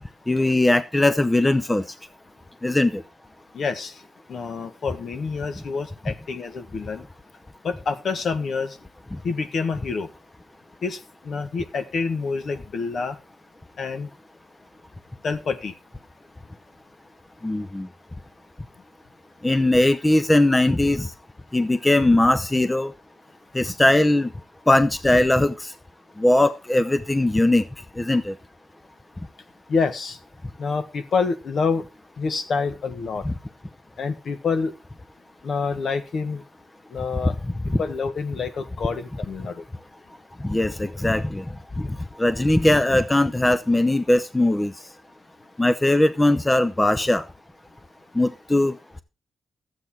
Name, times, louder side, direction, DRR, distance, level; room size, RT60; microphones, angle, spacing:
voice 1, 0.3-1.8 2.6-3.0 17.4-17.9 19.4-21.1 21.5-22.9 23.5-24.3 24.7-25.5 26.2-27.6 28.0-28.3 33.2-33.3 37.7-37.8 40.4-41.4 42.2-44.7 45.6-47.2 48.2-48.7, left 1 dB, 15° left, 0.7 m, -19 dB
voice 2, 3.5-4.0 4.3-7.1 7.6-8.8 9.2-10.1 10.8-13.2 13.8-14.1 15.2-15.7 29.7-30.2 30.6-31.8 32.2-33.2 34.0-34.7 35.4-36.4 36.9-37.3 37.8-39.6, left 5 dB, 60° left, 1.5 m, -27 dB
12.5 x 8.0 x 4.4 m
cardioid pair, 100°, 0 cm